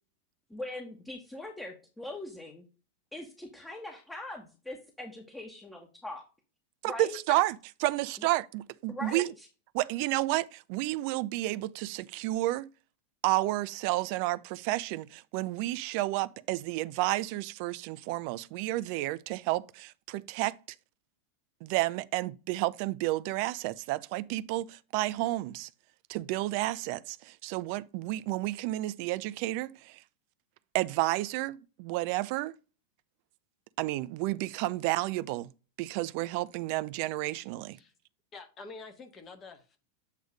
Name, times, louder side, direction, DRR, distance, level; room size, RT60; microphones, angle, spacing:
voice 1, 0.5-2.7 3.1-6.2 6.9-7.4 8.2-8.3 8.9-9.5, left 1 dB, 10° left, 1.4 m, -41 dB
voice 2, 6.8-7.5 7.8-9.3 9.7-12.7 13.2-20.5 21.6-25.7 26.1-30.0 30.7-32.5 33.8-35.5 35.8-37.8, right 17 dB, 50° right, 0.4 m, -31 dB
voice 3, 38.3-39.8, left 3 dB, 30° left, 1.4 m, -47 dB
8.2 x 3.1 x 5.1 m
figure-of-eight pair, 90°, 0 cm